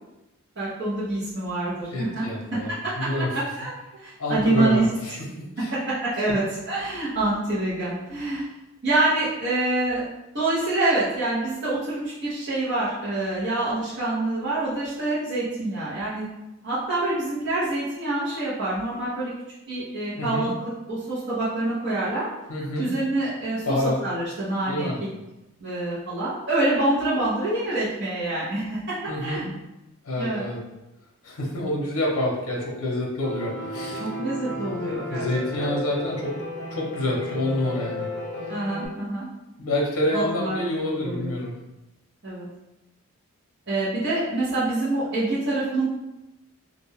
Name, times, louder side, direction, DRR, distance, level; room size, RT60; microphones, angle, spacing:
voice 1, 0.6-2.2 2.7-3.1 3.5-4.9 5.7-8.5 8.8-10.0 10.3-16.3 16.6-19.3 19.7-22.3 22.8-23.8 24.0-24.9 25.6-29.5 30.2-30.4 33.9-35.3 35.6-35.7 38.5-39.3 40.1-40.6 41.0-41.3 42.2-42.4 43.7-45.9, right 2 dB, 50° right, -12 dB, 0.8 m, -26 dB
voice 2, 1.9-2.7 3.0-3.3 4.2-5.1 5.6-5.7 6.2-6.3 20.2-20.4 22.5-22.9 23.6-24.0 24.7-25.0 29.1-29.5 30.0-30.6 31.2-34.0 34.6-36.3 36.7-38.1 39.6-41.5, left 1 dB, 80° left, -2 dB, 0.6 m, -27 dB
Piano, 33.2-38.9, left 2 dB, 15° left, 0.7 m, -33 dB
2.4 x 2.2 x 3.3 m, 0.96 s
head